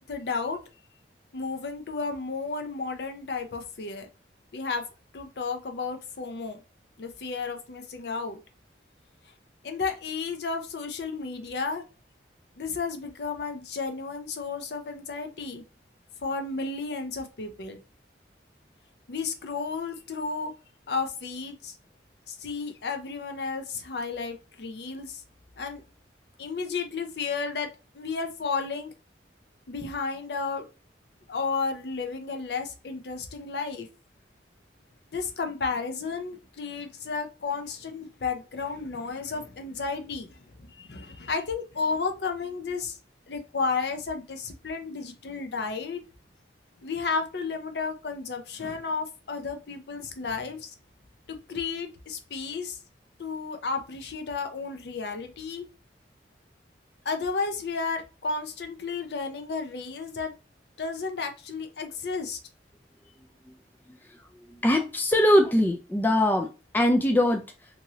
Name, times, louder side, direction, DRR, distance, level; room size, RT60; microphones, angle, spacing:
voice 1, 0.1-0.6 1.3-4.1 4.5-4.8 5.1-6.6 7.0-8.4 9.6-11.8 12.6-15.6 16.2-17.8 19.1-20.5 20.9-21.8 22.3-25.2 25.6-25.8 26.4-27.7 27.9-28.9 29.7-30.7 31.3-33.9 35.1-43.0 43.3-46.0 46.8-50.7 51.3-52.8 53.2-55.7 57.0-60.3 60.8-62.4, left 4 dB, 60° left, 5 dB, 0.5 m, -32 dB
voice 2, 64.5-66.5 66.7-67.4, left 1 dB, 10° left, 3 dB, 0.3 m, -22 dB
2.9 x 2.6 x 2.7 m, 0.32 s
head